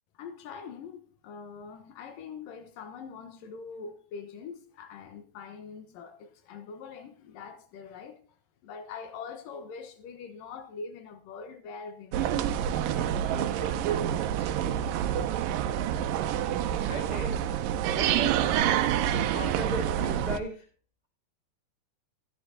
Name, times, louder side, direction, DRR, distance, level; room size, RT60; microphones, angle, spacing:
voice 1, 0.1-8.2 8.6-15.8, left 5 dB, 85° left, 2.9 m, -44 dB
sound 1, 12.1-20.4, right 10 dB, 85° right, 2.5 m, -27 dB
voice 2, 16.8-17.4 17.9-18.6 19.3-20.6, right 1 dB, 25° right, 0.8 m, -36 dB
13.5 x 10.5 x 4.0 m
omnidirectional pair, 3.9 m